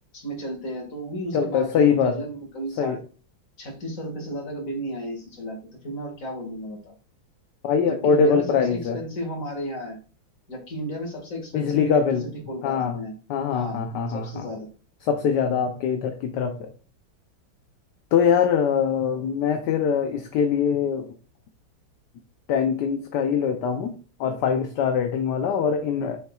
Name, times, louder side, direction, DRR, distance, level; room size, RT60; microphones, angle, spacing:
voice 1, 0.1-3.0 3.6-5.6 5.8-6.9 7.9-10.0 10.5-13.1 13.5-13.8 14.1-14.7, equal, 40° left, 1 dB, 2.3 m, -33 dB
voice 2, 1.3-2.2 2.8-3.0 7.6-9.0 11.5-12.2 12.6-13.0 13.3-14.5 15.0-16.7 18.1-21.1 22.5-23.9 24.2-26.2, left 6 dB, 65° left, 6 dB, 1.3 m, -23 dB
7.2 x 6.6 x 2.4 m, 0.37 s
omnidirectional pair, 2.1 m